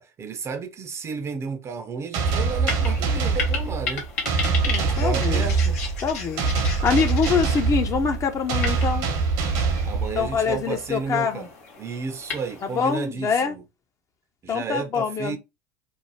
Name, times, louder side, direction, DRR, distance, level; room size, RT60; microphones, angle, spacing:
voice 1, 0.0-4.1 4.6-5.8 9.8-11.5 11.8-13.6 14.4-15.4, right 5 dB, 35° right, 0.5 m, -32 dB
sound 1, 2.1-10.6, right 4 dB, 65° right, 0.8 m, -24 dB
sound 2, 2.2-13.1, left 4 dB, 80° left, 0.9 m, -35 dB
voice 2, 4.7-5.5 6.0-9.1 10.1-11.5 12.7-13.5 14.5-15.4, left 6 dB, 35° left, 0.6 m, -25 dB
2.6 x 2.1 x 3.1 m
hypercardioid pair, 80°, 8 cm